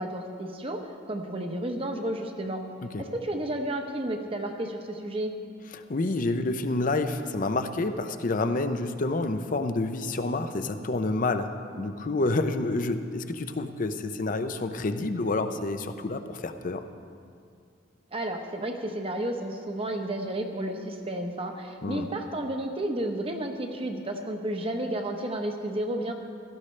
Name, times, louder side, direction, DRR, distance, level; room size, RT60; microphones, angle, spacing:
voice 1, 0.0-2.6 3.0-5.3 18.1-26.1, right 1 dB, 30° right, 4 dB, 0.9 m, -32 dB
voice 2, 5.7-11.5 11.8-16.8 21.8-22.1, left 2 dB, 40° left, 9 dB, 0.6 m, -28 dB
16.5 x 13.5 x 3.3 m, 2.4 s
head